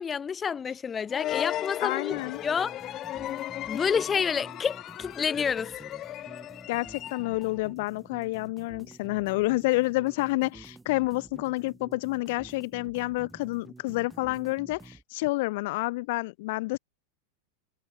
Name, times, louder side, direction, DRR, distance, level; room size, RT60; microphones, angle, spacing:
voice 1, 0.0-2.7 3.7-5.7, left 6 dB, 25° left, 1.8 m, -29 dB
sound 1, 1.1-7.6, left 13 dB, 40° left, 2.9 m, -36 dB
voice 2, 1.8-2.4 6.7-16.8, left 22 dB, 60° left, 1.0 m, -29 dB
sound 2, 2.1-15.0, right 3 dB, 10° right, 6.6 m, -50 dB
hypercardioid pair, 100°, 0 cm